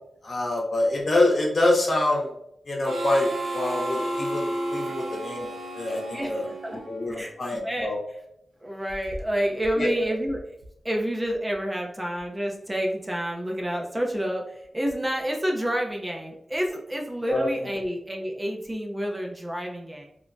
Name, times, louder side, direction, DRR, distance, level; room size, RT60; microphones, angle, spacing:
voice 1, 0.0-2.3 2.7-5.5 5.7-8.0 9.8-9.9 17.3-17.5, left 2 dB, 50° left, -2 dB, 0.8 m, -26 dB
Harmonica, 2.8-7.3, right 1 dB, 85° right, 0.6 m, -32 dB
voice 2, 6.1-6.8 7.1-7.9 8.6-10.5 10.8-20.1, equal, 20° right, 0 dB, 0.4 m, -29 dB
3.2 x 2.0 x 2.5 m, 0.76 s
wide cardioid pair, 85°, 0 cm